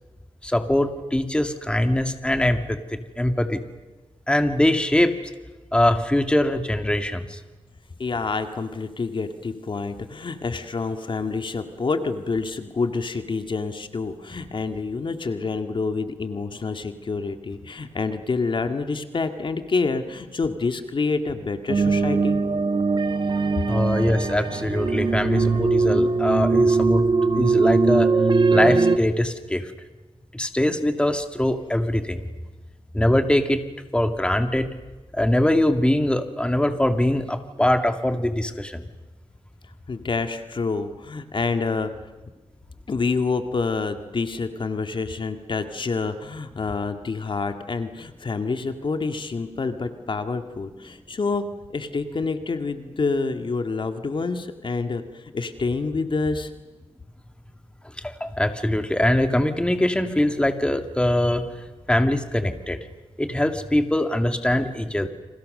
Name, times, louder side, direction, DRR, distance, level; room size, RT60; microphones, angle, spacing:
voice 1, 0.4-3.6 4.3-5.2 5.7-7.4 14.4-14.5 23.6-27.0 27.3-28.1 28.5-29.7 30.3-32.3 32.9-33.6 33.9-34.7 35.1-38.8 58.0-62.8 63.2-65.1, left 1 dB, 10° left, 7 dB, 2.2 m, -22 dB
voice 2, 8.0-22.4 23.6-23.7 39.9-41.9 42.9-51.5 51.7-56.5, left 4 dB, 50° left, 7 dB, 2.0 m, -27 dB
sound 1, 21.7-29.0, right 4 dB, 45° right, 1.6 m, -21 dB
30.0 x 26.5 x 6.7 m, 1.2 s
cardioid pair, 80°, 11 cm